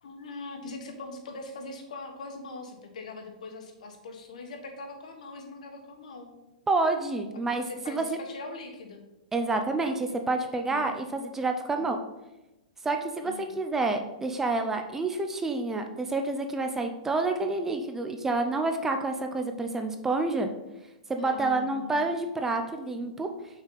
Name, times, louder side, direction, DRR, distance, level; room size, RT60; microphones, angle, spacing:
voice 1, 0.0-6.3 7.6-9.0 10.6-11.0 11.8-11.9 13.2-13.5 21.2-22.1, left 3 dB, 85° left, 4 dB, 1.3 m, -42 dB
voice 2, 6.7-8.0 9.3-12.0 12.8-20.5 21.1-23.3, right 3 dB, 10° right, 6 dB, 0.4 m, -28 dB
6.0 x 4.1 x 4.0 m, 0.99 s
hypercardioid pair, 155°, 4 cm